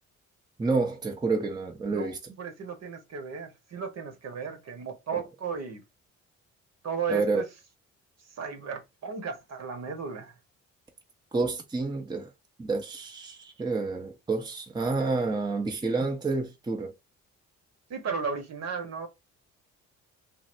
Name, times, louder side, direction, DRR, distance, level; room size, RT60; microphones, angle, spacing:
voice 1, 0.6-2.2 7.1-7.4 11.3-12.3 12.6-16.9, right 3 dB, 15° right, 0.7 m, -29 dB
voice 2, 2.4-5.8 6.8-7.5 8.4-10.3 14.8-15.0 17.9-19.1, right 5 dB, 60° right, 1.2 m, -35 dB
3.2 x 2.7 x 2.6 m
cardioid pair, 90°, 30 cm